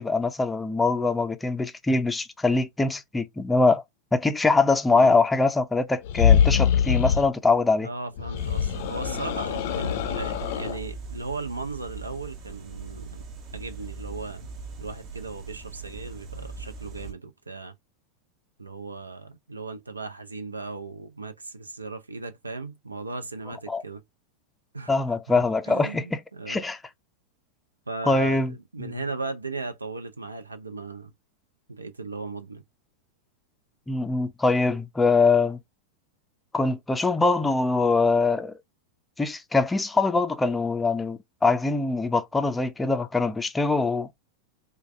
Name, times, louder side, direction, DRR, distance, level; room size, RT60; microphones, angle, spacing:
voice 1, 0.0-3.8 4.1-7.9 23.7-23.8 24.9-26.2 26.5-26.8 28.1-28.5 28.8-28.9 33.9-35.6 36.5-38.5 39.2-44.1, left 3 dB, 10° left, 0.5 m, -23 dB
sound 1, 6.0-7.3 8.2-10.8, left 8 dB, 50° left, 0.6 m, -23 dB
voice 2, 7.8-13.2 13.5-14.5 14.8-17.7 18.6-24.0 24.7-25.0 25.7-26.7 27.9-31.1 31.7-32.6, right 3 dB, 80° right, 0.6 m, -37 dB
sound 2, 8.3-17.1, right 4 dB, 35° right, 0.9 m, -40 dB
4.7 x 2.3 x 3.1 m
figure-of-eight pair, 90°, 0 cm